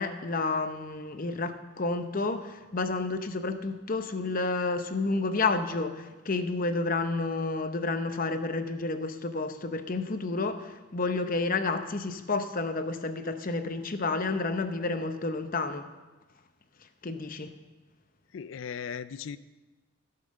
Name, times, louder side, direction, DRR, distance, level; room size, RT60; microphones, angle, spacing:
voice 1, 0.0-15.9 17.0-17.5, left 3 dB, 40° left, 8 dB, 0.8 m, -30 dB
voice 2, 18.3-19.4, left 7 dB, 65° left, 15 dB, 0.4 m, -37 dB
16.0 x 5.8 x 6.4 m, 1.2 s
head